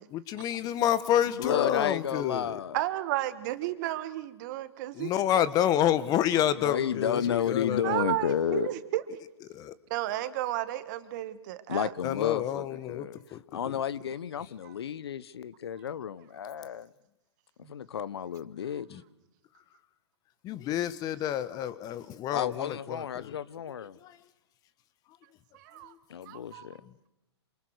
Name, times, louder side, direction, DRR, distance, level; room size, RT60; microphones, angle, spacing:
voice 1, 0.1-2.5 4.9-7.9 9.5-9.7 12.0-13.8 18.9-19.0 20.4-23.4 24.0-24.2 25.8-26.0, left 11 dB, 25° left, 1.5 m, -29 dB
voice 2, 1.3-2.8 6.6-8.7 11.7-13.2 13.5-16.9 17.7-19.0 22.3-24.0 26.1-26.8, left 8 dB, 65° left, 1.0 m, -32 dB
voice 3, 2.7-5.1 7.8-9.0 9.9-11.9 14.6-14.7 17.6-17.7 25.5-25.9 26.2-26.7, right 15 dB, 40° right, 1.8 m, -32 dB
27.5 x 26.5 x 6.6 m
hypercardioid pair, 120°, 14 cm